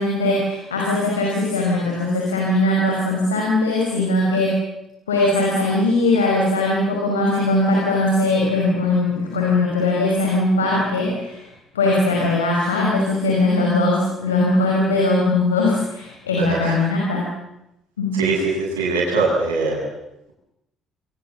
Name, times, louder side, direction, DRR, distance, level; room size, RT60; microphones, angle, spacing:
voice 1, 0.0-4.6 5.1-11.4 11.7-17.3 18.0-18.2, left 2 dB, 80° left, -2 dB, 5.6 m, -20 dB
voice 2, 16.4-16.8 18.2-19.8, right 3 dB, 80° right, -2 dB, 7.8 m, -21 dB
27.5 x 24.0 x 7.5 m, 0.87 s
figure-of-eight pair, 50°, 0 cm